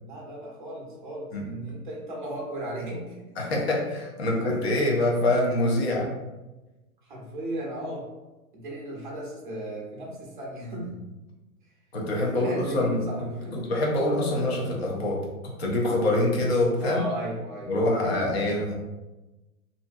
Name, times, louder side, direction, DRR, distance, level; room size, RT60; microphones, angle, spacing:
voice 1, 0.0-3.3 4.3-4.4 7.0-8.1 8.5-11.0 12.2-13.6 16.8-18.2, right 1 dB, 35° right, -2 dB, 0.6 m, -36 dB
voice 2, 3.4-6.1 11.9-13.0 13.5-17.0 17.7-18.7, left 1 dB, 45° left, -2 dB, 0.6 m, -25 dB
2.6 x 2.5 x 2.3 m, 1.1 s
hypercardioid pair, 180°, 44 cm